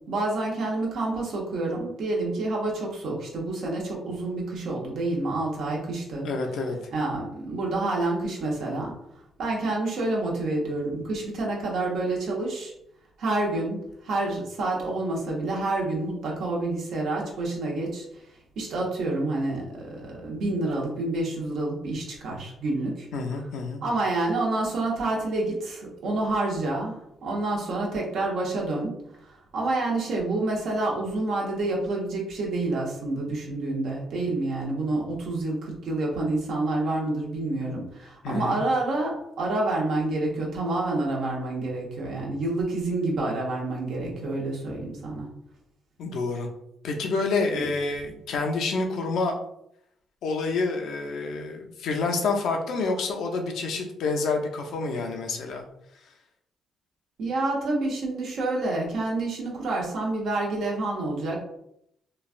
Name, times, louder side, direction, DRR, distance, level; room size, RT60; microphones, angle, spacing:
voice 1, 0.1-6.3 6.9-8.9 9.4-12.7 13.2-18.2 18.6-23.1 23.8-45.3 47.5-47.6 57.2-61.4, right 2 dB, 70° right, -2 dB, 0.9 m, -28 dB
voice 2, 6.2-6.8 23.1-23.8 38.2-38.6 46.0-46.5 46.8-49.4 50.2-55.6, left 3 dB, 75° left, 3 dB, 0.5 m, -28 dB
3.1 x 2.3 x 2.5 m, 0.76 s
cardioid pair, 90°, 0 cm